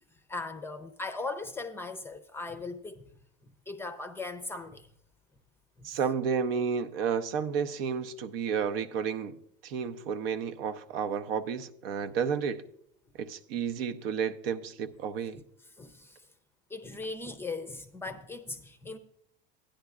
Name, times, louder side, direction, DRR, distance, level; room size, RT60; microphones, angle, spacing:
voice 1, 0.3-3.1 3.4-4.9 5.8-6.0 15.3-15.4 15.8-16.3 16.7-19.0, left 3 dB, 10° left, 0.5 m, -39 dB
voice 2, 5.8-9.3 9.6-12.6 13.2-15.4, right 6 dB, 80° right, 0.8 m, -31 dB
15.5 x 10.0 x 2.4 m
supercardioid pair, 130°, 29 cm